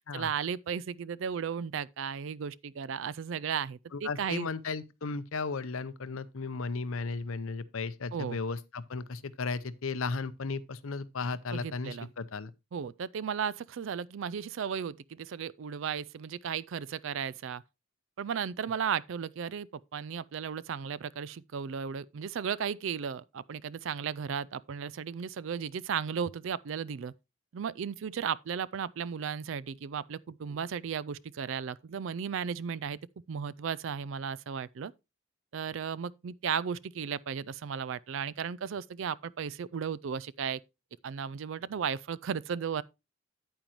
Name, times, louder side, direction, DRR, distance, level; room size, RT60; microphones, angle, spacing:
voice 1, 0.1-4.5 8.1-8.4 11.5-12.1 12.7-17.6 18.2-27.1 27.5-33.0 33.3-34.9 35.5-40.6 41.0-42.8, right 7 dB, 65° right, 0.4 m, -35 dB
voice 2, 3.9-12.5, left 4 dB, 80° left, 0.7 m, -35 dB
9.0 x 8.9 x 3.0 m
head